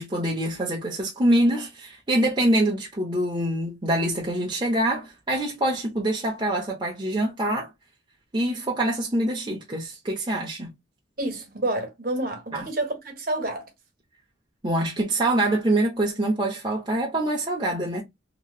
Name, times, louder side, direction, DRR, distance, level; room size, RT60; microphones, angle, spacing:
voice 1, 0.0-7.7 8.3-10.7 12.5-12.7 14.6-18.0, right 1 dB, 20° right, 0.8 m, -25 dB
voice 2, 11.2-13.7, right 1 dB, 45° right, 1.2 m, -29 dB
3.1 x 3.0 x 2.3 m
head